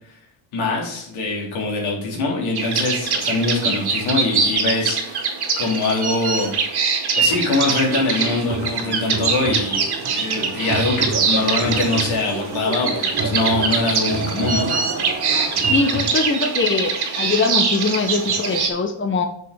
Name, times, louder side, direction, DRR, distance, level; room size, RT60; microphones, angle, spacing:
voice 1, 0.5-6.5 7.2-9.8 10.1-14.7, left 3 dB, 85° left, -1 dB, 3.3 m, -23 dB
sound 1, 2.6-18.7, right 5 dB, 55° right, 2.1 m, -23 dB
sound 2, 7.3-16.0, right 3 dB, 30° right, 2.1 m, -29 dB
voice 2, 15.7-19.3, left 4 dB, 25° left, 5 dB, 1.1 m, -22 dB
6.2 x 5.5 x 6.5 m, 0.69 s
cardioid pair, 90°, 47 cm